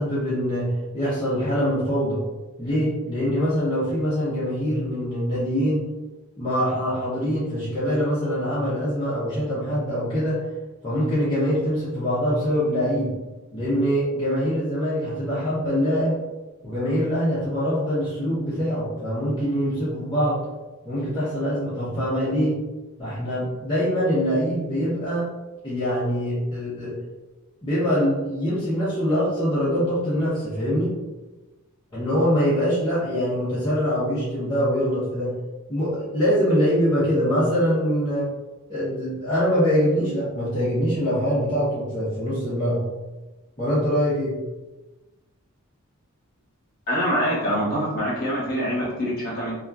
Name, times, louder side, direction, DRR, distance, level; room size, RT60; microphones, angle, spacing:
voice 1, 0.0-2.2 2.6-5.9 6.4-10.4 10.8-13.1 13.5-16.2 16.6-20.4 20.8-22.6 23.0-25.3 25.6-26.9 27.6-30.9 31.9-35.3 35.7-38.3 38.7-42.8 43.6-44.4, equal, 20° left, -11 dB, 0.6 m, -24 dB
voice 2, 46.9-49.6, equal, 45° left, -6 dB, 1.0 m, -25 dB
2.8 x 2.2 x 2.3 m, 1.1 s
head